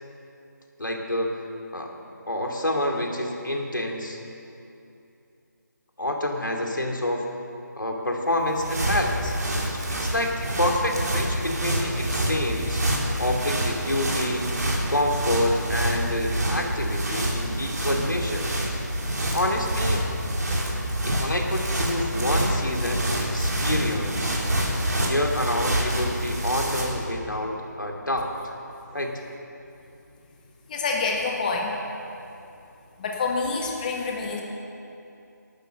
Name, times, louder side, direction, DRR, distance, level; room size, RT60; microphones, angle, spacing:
voice 1, 0.8-1.4 1.7-1.9 2.3-4.2 6.0-7.2 7.8-9.3 9.7-12.8 13.2-14.5 14.9-18.5 19.2-20.0 21.1-24.4 25.0-28.3 28.9-29.1, left 1 dB, 90° left, 1 dB, 2.5 m, -28 dB
sound 1, 8.3-27.1, right 1 dB, 60° right, 3.1 m, -27 dB
voice 2, 30.7-31.8 33.0-34.4, left 4 dB, 25° left, 0 dB, 1.4 m, -27 dB
14.0 x 12.0 x 6.9 m, 2.7 s
figure-of-eight pair, 160°, 10 cm